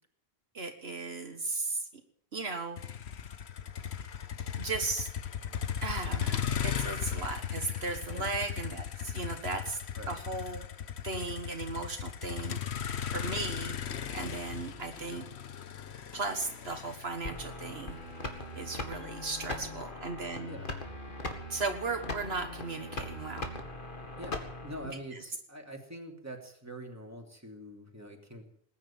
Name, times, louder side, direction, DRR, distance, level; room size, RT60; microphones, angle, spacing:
voice 1, 0.5-1.8 2.3-2.8 4.6-5.1 5.8-9.8 10.1-10.6 11.0-12.6 13.1-13.8 14.1-15.2 16.1-18.0 18.5-20.5 21.5-23.5, right 3 dB, 70° right, 6 dB, 1.7 m, -36 dB
Motor vehicle (road), 2.8-18.9, left 8 dB, 80° left, 1.3 m, -37 dB
sound 1, 17.2-24.9, left 2 dB, 50° left, 2.3 m, -40 dB
voice 2, 24.2-28.4, right 1 dB, 15° right, 2 dB, 3.0 m, -45 dB
20.0 x 9.9 x 7.2 m, 0.62 s
omnidirectional pair, 1.1 m